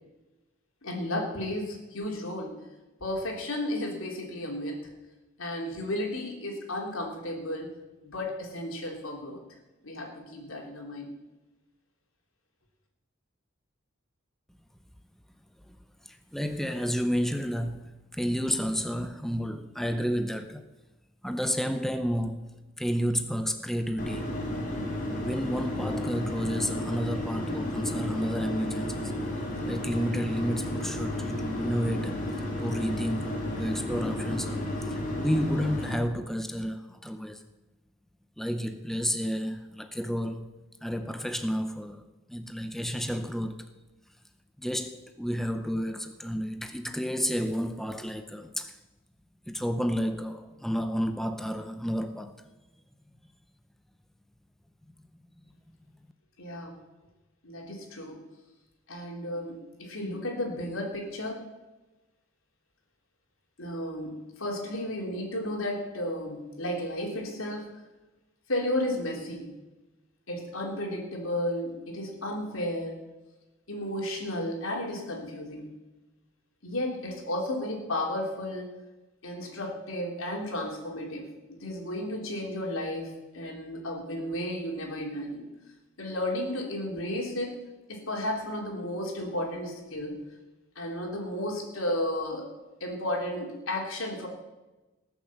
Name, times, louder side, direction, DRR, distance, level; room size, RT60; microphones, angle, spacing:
voice 1, 0.8-2.6 3.0-5.0 5.4-7.7 8.0-9.4 9.8-11.2 56.4-56.8 57.4-58.3 58.9-61.4 63.6-67.7 68.5-69.6 70.3-73.0 73.7-75.8 76.6-78.8 79.2-85.5 86.0-87.5 87.9-90.3 90.7-92.5 92.8-94.3, left 1 dB, 90° left, 3.3 m, -33 dB
voice 2, 16.3-20.6 21.2-22.4 22.8-24.3 25.2-29.1 29.7-32.2 32.6-34.6 34.9-37.4 38.4-40.5 40.8-42.0 42.3-43.6 44.6-48.7 49.5-52.3, equal, ahead, 0.7 m, -31 dB
sound 1, 24.0-36.0, left 1 dB, 40° left, 2.8 m, -32 dB
19.0 x 7.1 x 7.4 m
head